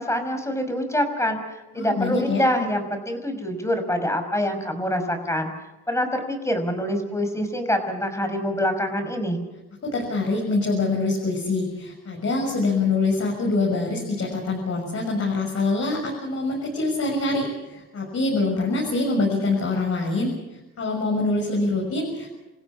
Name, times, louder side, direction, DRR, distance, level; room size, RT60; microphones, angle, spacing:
voice 1, 0.0-5.5 5.9-9.4, equal, 10° left, 6 dB, 5.7 m, -25 dB
voice 2, 1.7-2.4 9.8-22.3, left 3 dB, 50° left, -1 dB, 6.6 m, -25 dB
28.5 x 16.0 x 7.3 m, 1.0 s
cardioid pair, 90°, 30 cm